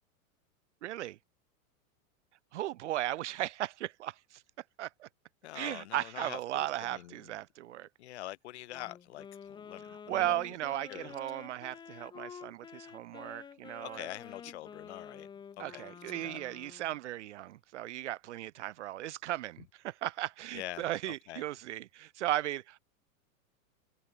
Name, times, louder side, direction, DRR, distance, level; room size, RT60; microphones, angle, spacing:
voice 1, 0.8-1.2 2.5-4.4 4.8-5.1 5.5-7.9 9.9-14.1 15.6-22.8, right 14 dB, 55° right, 0.6 m, -36 dB
voice 2, 5.4-7.3 8.0-10.4 10.9-11.1 13.8-15.3 15.6-15.9 16.2-16.4 20.5-21.4, left 15 dB, 50° left, 4.5 m, -45 dB
Wind instrument woodwind instrument, 8.7-17.0, left 7 dB, 10° left, 3.5 m, -49 dB
supercardioid pair, 180°, 42 cm